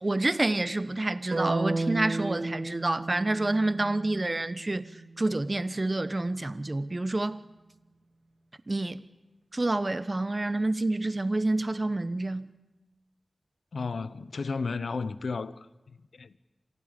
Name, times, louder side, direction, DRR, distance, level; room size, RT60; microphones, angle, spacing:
voice 1, 0.0-4.9 5.2-7.4 8.7-9.0 9.5-12.5, right 2 dB, 35° right, 1.0 m, -28 dB
sound 1, 1.3-5.4, right 2 dB, 50° right, 2.9 m, -34 dB
voice 2, 13.7-15.6 16.2-16.4, left 4 dB, 90° left, 0.8 m, -33 dB
29.0 x 26.5 x 5.3 m
wide cardioid pair, 80°, 0 cm